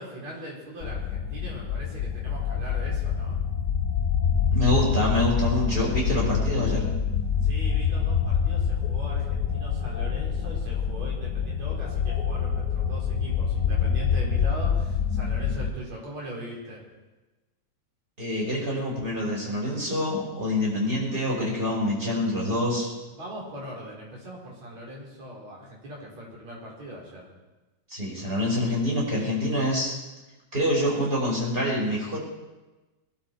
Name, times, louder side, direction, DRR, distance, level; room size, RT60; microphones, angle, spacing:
voice 1, 0.0-3.4 7.4-16.8 23.1-27.3, equal, 70° right, -3 dB, 5.8 m, -40 dB
sound 1, 0.8-15.7, left 7 dB, 80° left, 0.9 m, -26 dB
voice 2, 4.5-6.9 18.2-22.9 27.9-29.9 30.5-32.2, left 1 dB, 15° right, -4 dB, 5.3 m, -26 dB
21.5 x 12.0 x 4.7 m, 1.1 s
omnidirectional pair, 3.3 m